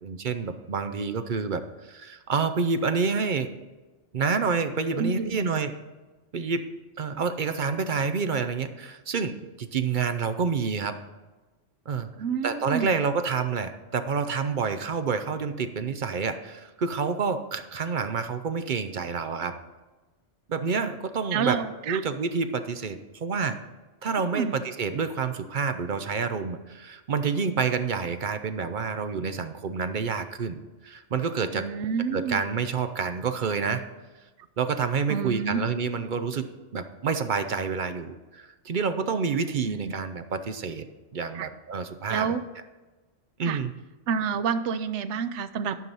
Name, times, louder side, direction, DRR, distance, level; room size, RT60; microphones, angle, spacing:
voice 1, 0.0-3.5 4.1-5.7 6.3-6.7 7.0-11.0 11.9-12.1 12.4-19.6 20.5-21.6 21.9-23.6 24.0-31.6 32.1-33.9 34.6-40.8 41.1-42.3 43.4-43.7, right 5 dB, 50° right, 9 dB, 0.7 m, -28 dB
voice 2, 4.9-5.5 12.2-13.0 21.3-22.0 24.2-24.6 31.5-32.4 35.1-35.6 39.7-39.9 41.3-41.5 42.1-42.4 43.5-43.6 44.1-45.8, right 6 dB, 75° right, 12 dB, 0.9 m, -29 dB
12.0 x 5.7 x 5.4 m, 1.2 s
omnidirectional pair, 1.2 m